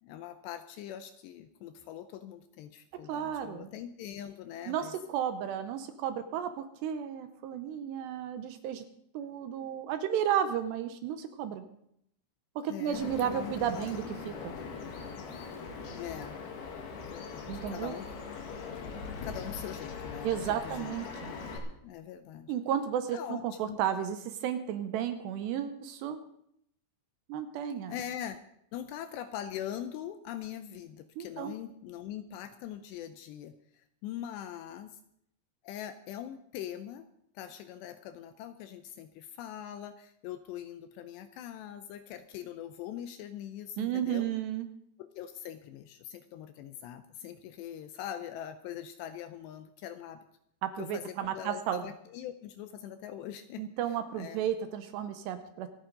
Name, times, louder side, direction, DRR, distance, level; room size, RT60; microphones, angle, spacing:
voice 1, 0.0-4.9 12.7-13.9 15.9-16.4 16.9-18.4 18.8-18.9 19.2-21.4 21.8-22.5 23.1-23.8 27.9-28.4 28.7-35.0 35.6-37.1 37.4-44.3 45.0-50.3 50.8-53.6 54.2-54.4, left 10 dB, 80° left, 10 dB, 2.6 m, -42 dB
voice 2, 3.1-3.7 4.7-8.8 9.1-11.6 12.6-14.5 17.5-17.9 20.2-21.3 22.5-26.2 27.3-28.0 31.2-31.5 43.8-44.7 50.6-51.8 53.6-55.7, right 9 dB, 75° right, 9 dB, 2.7 m, -33 dB
Bird vocalization bird call bird song, 12.9-21.6, left 5 dB, 60° left, 3.5 m, -41 dB
27.0 x 9.3 x 3.9 m, 0.71 s
omnidirectional pair, 5.4 m